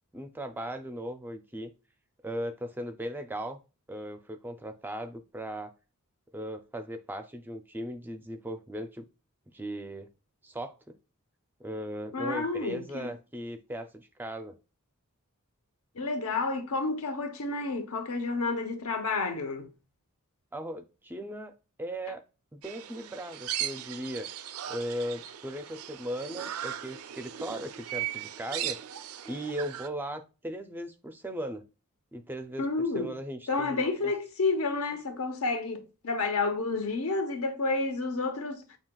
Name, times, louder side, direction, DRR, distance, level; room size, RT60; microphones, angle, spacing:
voice 1, 0.1-1.7 2.2-3.6 3.9-5.7 6.3-9.0 9.5-10.1 10.4-10.7 11.6-14.6 20.5-21.5 21.8-22.2 22.5-24.3 24.7-28.8 29.2-31.6 32.1-32.7 32.9-34.1, equal, 10° right, 0.4 m, -38 dB
voice 2, 12.1-13.1 15.9-19.7 32.6-33.1 33.5-38.8, left 3 dB, 75° left, 0.8 m, -30 dB
sound 1, 22.6-29.9, right 11 dB, 75° right, 0.4 m, -38 dB
7.2 x 2.8 x 2.3 m
head